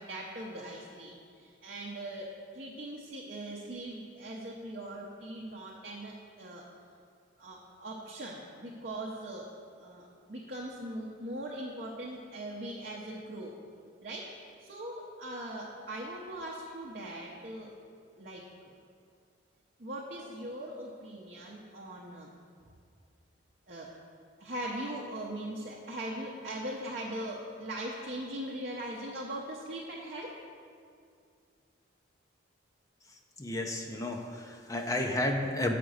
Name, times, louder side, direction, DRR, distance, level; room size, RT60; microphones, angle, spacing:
voice 1, 0.0-6.7 7.4-9.5 9.8-13.6 14.0-17.7 18.2-18.7 19.8-22.3 23.7-23.9 24.4-30.4, right 1 dB, 50° right, -3 dB, 0.7 m, -40 dB
voice 2, 33.4-35.7, left 1 dB, 15° left, 3 dB, 0.6 m, -32 dB
6.9 x 5.0 x 6.3 m, 2.3 s
head